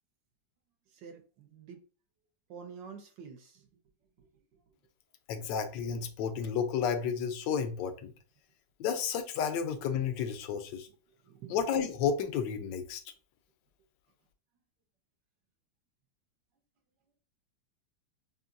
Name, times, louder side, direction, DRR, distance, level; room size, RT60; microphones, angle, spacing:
voice 1, 0.9-1.8 2.5-3.7 4.2-4.8 10.9-11.6, right 6 dB, 85° right, 1.6 m, -49 dB
voice 2, 5.3-8.1 8.8-10.9 11.5-13.0, left 7 dB, 85° left, 1.3 m, -32 dB
5.7 x 2.6 x 2.5 m
omnidirectional pair, 1.9 m